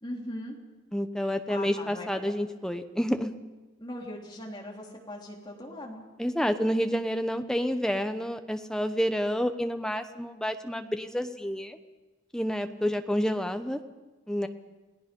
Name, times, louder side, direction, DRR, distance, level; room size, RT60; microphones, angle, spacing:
voice 1, 0.0-0.6 1.3-2.2 3.8-6.0, left 1 dB, 20° left, -1 dB, 3.5 m, -40 dB
voice 2, 0.9-3.3 6.2-11.8 12.3-13.8 14.3-14.5, equal, 5° left, 7 dB, 0.9 m, -29 dB
29.0 x 18.0 x 5.4 m, 1.1 s
head